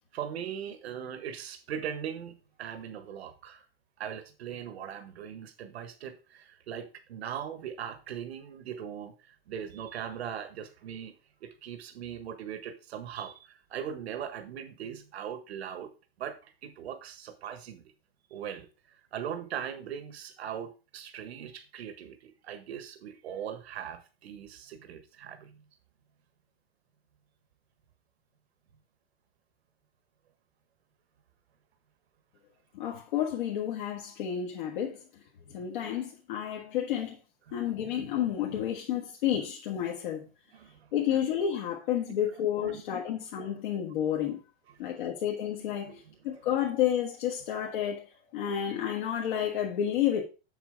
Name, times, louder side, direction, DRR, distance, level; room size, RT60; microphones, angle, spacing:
voice 1, 0.1-3.7 4.0-11.1 11.4-15.9 16.2-17.8 18.3-25.6 37.5-37.6 40.5-40.9 42.6-43.1 44.7-44.8 45.8-46.1, right 8 dB, 80° right, 1.5 m, -40 dB
voice 2, 32.7-35.0 35.5-37.2 37.5-40.3 40.9-44.4 44.8-50.2, left 10 dB, 50° left, 1.5 m, -30 dB
7.6 x 7.3 x 3.6 m
supercardioid pair, 175°, 31 cm